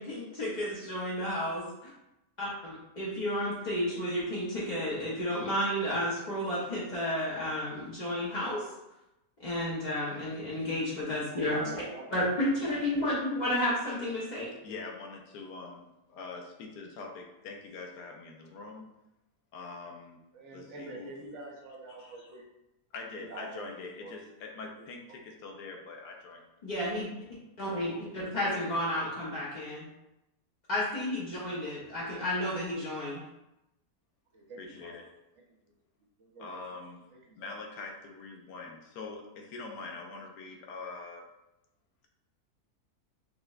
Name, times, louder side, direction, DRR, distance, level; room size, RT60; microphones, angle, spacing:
voice 1, 0.0-1.9 2.4-8.6 9.4-11.6 12.1-14.5 26.6-27.1 27.6-29.9 30.7-33.2, left 1 dB, 55° left, -7 dB, 0.4 m, -32 dB
voice 2, 11.1-13.0 20.3-22.4 23.1-24.2 24.8-24.9 28.2-28.8 31.6-31.9 34.3-35.0 36.2-36.9 37.1-37.5, right 2 dB, 60° right, -1 dB, 0.8 m, -46 dB
voice 3, 14.6-18.9 19.5-20.2 20.5-21.1 21.9-22.3 22.9-26.5 34.6-35.1 36.4-37.0 37.4-41.2, left 3 dB, 90° left, 1 dB, 1.2 m, -44 dB
5.6 x 2.1 x 2.3 m, 0.91 s
omnidirectional pair, 1.7 m